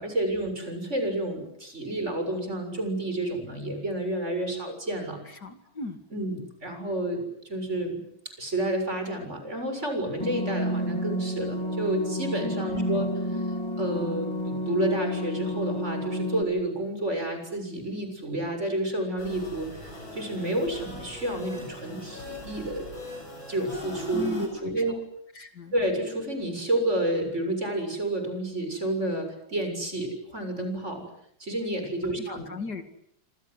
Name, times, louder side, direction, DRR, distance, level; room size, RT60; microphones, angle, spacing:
voice 1, 0.0-5.2 6.1-8.0 8.4-13.4 13.8-22.9 23.5-25.0 25.7-31.0 31.4-32.5, right 1 dB, 35° right, 6 dB, 7.5 m, -30 dB
voice 2, 5.3-6.0 12.6-13.1 24.1-24.4 24.8-25.0 25.3-25.7 32.0-32.8, left 4 dB, 55° left, 7 dB, 2.8 m, -37 dB
sound 1, 10.2-16.4, equal, 15° left, 2.9 m, -30 dB
sound 2, 19.2-24.5, left 2 dB, 80° left, 8.7 m, -41 dB
28.0 x 26.5 x 8.1 m, 0.68 s
omnidirectional pair, 2.1 m